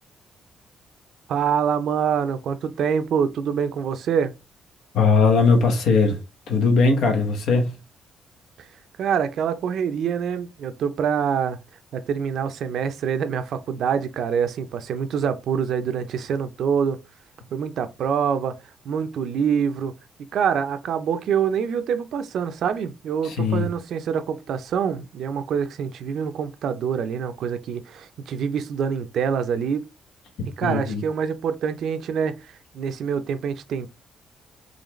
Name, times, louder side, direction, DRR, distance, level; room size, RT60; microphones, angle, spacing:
voice 1, 1.3-4.3 8.6-8.7 9.0-11.6 11.9-17.0 17.5-18.6 18.8-19.9 20.3-29.9 30.6-33.9, right 7 dB, 70° right, 0.5 m, -25 dB
voice 2, 4.9-6.2 6.5-7.8 23.2-23.7 30.6-31.0, left 4 dB, 80° left, 0.9 m, -19 dB
4.0 x 3.2 x 3.1 m
cardioid pair, 90°, 0 cm